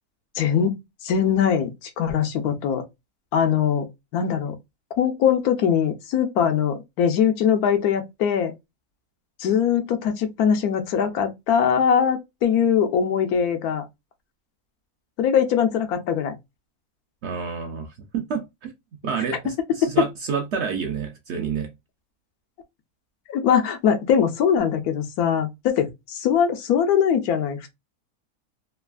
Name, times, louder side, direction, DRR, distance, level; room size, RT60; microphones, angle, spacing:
voice 1, 0.4-0.8 1.0-2.8 3.3-3.9 4.1-4.5 5.0-8.5 9.4-13.8 15.2-16.3 19.8-19.9 23.3-27.7, left 8 dB, 80° left, 1.1 m, -21 dB
voice 2, 17.2-18.7 19.0-21.7, right 6 dB, 65° right, 0.7 m, -29 dB
3.2 x 2.4 x 2.2 m
omnidirectional pair, 1.6 m